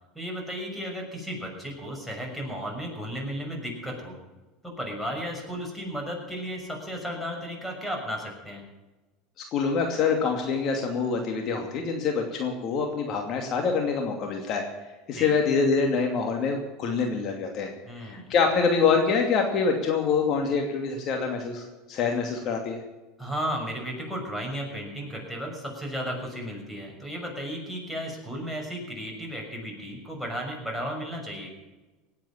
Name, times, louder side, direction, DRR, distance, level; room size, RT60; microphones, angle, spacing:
voice 1, 0.1-4.2 4.6-8.6 15.1-15.3 17.9-18.3 23.2-31.5, equal, 5° left, 1 dB, 6.3 m, -34 dB
voice 2, 9.5-14.6 15.1-17.7 18.0-22.8, left 5 dB, 50° left, 3 dB, 2.6 m, -25 dB
18.5 x 8.8 x 7.4 m, 1.2 s
hypercardioid pair, 95°, 0 cm